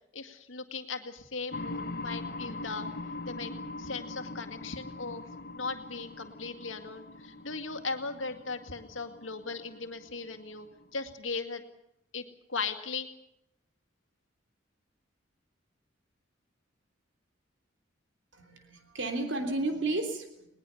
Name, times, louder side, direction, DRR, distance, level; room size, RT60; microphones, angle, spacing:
voice 1, 0.1-2.9 3.3-3.5 3.8-5.2 5.6-10.7 10.9-11.6 12.1-13.1, left 4 dB, 85° left, 8 dB, 2.1 m, -38 dB
sound 1, 1.5-11.1, left 2 dB, 50° left, 1.1 m, -42 dB
voice 2, 18.3-20.5, right 2 dB, 70° right, 5 dB, 3.4 m, -32 dB
21.0 x 20.0 x 7.1 m, 0.81 s
head